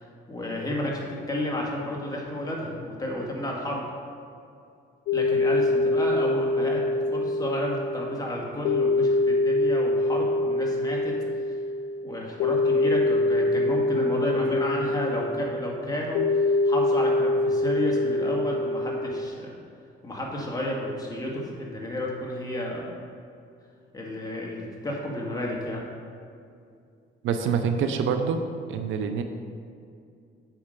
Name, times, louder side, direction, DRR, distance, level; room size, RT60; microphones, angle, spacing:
voice 1, 0.3-3.8 5.1-6.8 7.1-11.1 11.5-11.6 12.0-19.5 20.0-22.9 23.9-25.8, left 1 dB, 20° left, -2 dB, 2.1 m, -31 dB
sound 1, 5.1-19.3, left 2 dB, 75° left, 0.5 m, -25 dB
voice 2, 27.2-28.4 28.7-29.2, right 6 dB, 80° right, 7 dB, 0.7 m, -26 dB
8.6 x 5.8 x 5.2 m, 2.4 s
cardioid pair, 90°, 20 cm